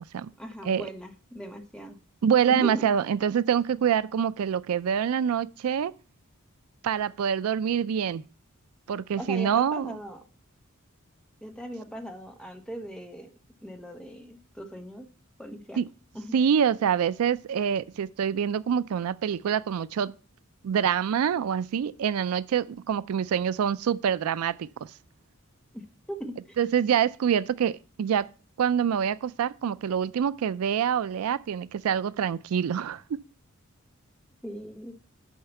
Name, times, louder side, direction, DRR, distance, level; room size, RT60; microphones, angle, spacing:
voice 1, 0.4-2.0 2.5-2.9 9.2-10.2 11.4-13.3 13.6-15.1 15.4-15.8 16.1-16.3 25.7-25.8 26.1-26.6 34.4-35.0, equal, 5° left, 1.0 m, -39 dB
voice 2, 2.2-5.9 6.8-8.2 8.9-9.9 15.8-15.9 16.3-20.1 20.6-24.7 26.6-28.3 28.6-33.2, right 8 dB, 85° right, 0.4 m, -26 dB
6.5 x 5.6 x 7.0 m
head